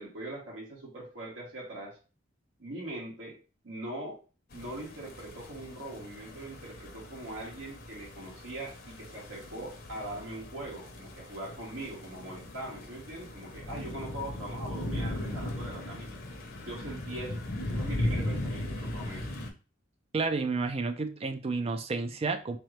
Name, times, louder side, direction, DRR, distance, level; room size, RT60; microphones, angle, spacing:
voice 1, 0.0-2.0 2.6-3.4 3.6-4.2 4.5-16.1 16.6-19.3, right 1 dB, 80° right, -3 dB, 1.4 m, -41 dB
sound 1, 4.5-19.5, left 1 dB, 50° left, 0.8 m, -38 dB
voice 2, 20.1-22.6, right 4 dB, 30° right, 8 dB, 0.4 m, -31 dB
3.7 x 3.1 x 3.2 m, 0.34 s
head